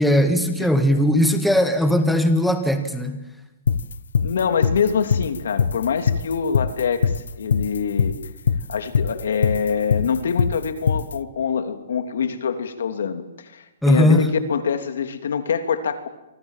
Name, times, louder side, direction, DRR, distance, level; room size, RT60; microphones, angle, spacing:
voice 1, 0.0-3.2 13.8-14.3, equal, ahead, 6 dB, 1.6 m, -18 dB
sound 1, 3.7-11.1, left 6 dB, 85° left, 1.3 m, -21 dB
voice 2, 4.2-8.1 8.7-16.1, left 6 dB, 70° left, 8 dB, 3.0 m, -25 dB
28.0 x 24.5 x 7.5 m, 0.97 s
hypercardioid pair, 170°, 0 cm